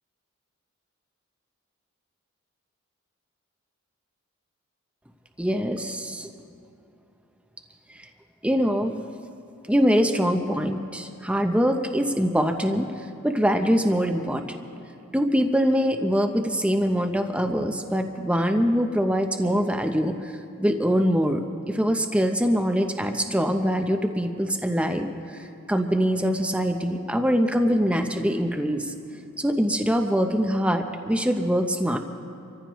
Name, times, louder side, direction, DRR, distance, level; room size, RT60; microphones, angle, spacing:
voice 1, 5.4-6.3 7.9-8.0 8.4-8.9 9.7-12.9 13.2-14.6 15.1-20.3 20.6-21.4 21.7-28.9 29.4-32.0, equal, 5° right, 5 dB, 0.6 m, -23 dB
26.0 x 14.5 x 3.1 m, 2.7 s
head